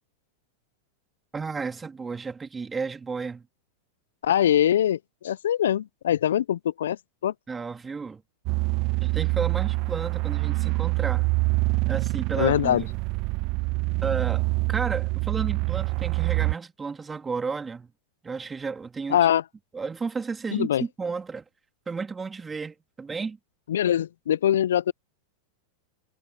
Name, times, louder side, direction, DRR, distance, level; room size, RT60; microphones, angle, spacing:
voice 1, 1.3-3.5 7.5-8.2 9.0-11.3 11.9-12.9 14.0-17.9 18.2-19.2 19.7-21.4 21.9-23.4, right 4 dB, 15° right, 2.4 m, -32 dB
voice 2, 4.2-7.0 7.2-7.3 12.4-12.8 19.1-19.4 20.5-20.8 23.7-24.9, left 10 dB, 75° left, 0.3 m, -23 dB
sound 1, 8.5-16.5, right 27 dB, 50° right, 0.3 m, -26 dB
hypercardioid pair, 100°, 0 cm